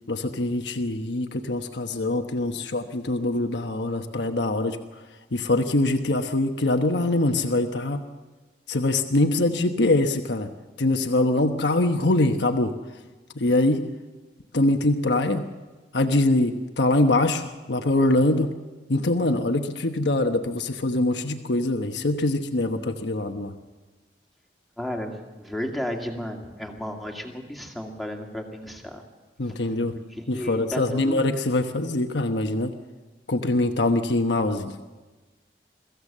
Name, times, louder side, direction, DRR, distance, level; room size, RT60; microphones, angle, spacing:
voice 1, 0.1-4.8 5.3-8.0 8.7-10.5 10.8-12.7 13.3-13.8 14.5-15.5 15.9-18.5 18.9-23.5 29.4-30.0 30.3-32.7 33.3-34.8, left 2 dB, 90° left, 5 dB, 1.1 m, -23 dB
voice 2, 24.8-29.0 29.5-29.6 30.3-31.3, left 1 dB, ahead, 1 dB, 2.3 m, -33 dB
23.0 x 15.0 x 7.4 m, 1.2 s
head